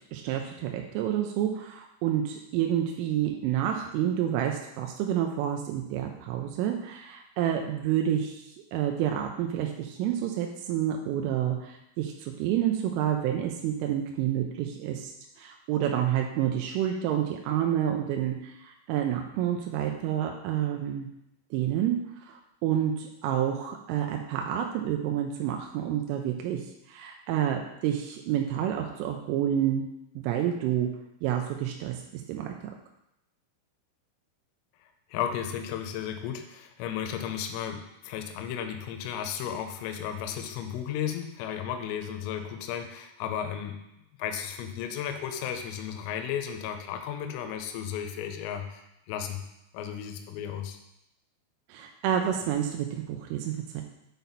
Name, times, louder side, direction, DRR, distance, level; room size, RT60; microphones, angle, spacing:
voice 1, 0.1-8.4 8.7-15.1 15.4-21.1 21.5-22.0 22.3-26.6 26.9-29.8 30.2-30.9 31.2-32.0 32.3-32.5 51.7-53.8, right 10 dB, 85° right, 2 dB, 3.1 m, -29 dB
voice 2, 35.1-43.8 44.2-49.4 49.7-50.8, left 9 dB, 85° left, 6 dB, 3.2 m, -34 dB
8.1 x 4.2 x 4.0 m, 0.84 s
omnidirectional pair, 5.8 m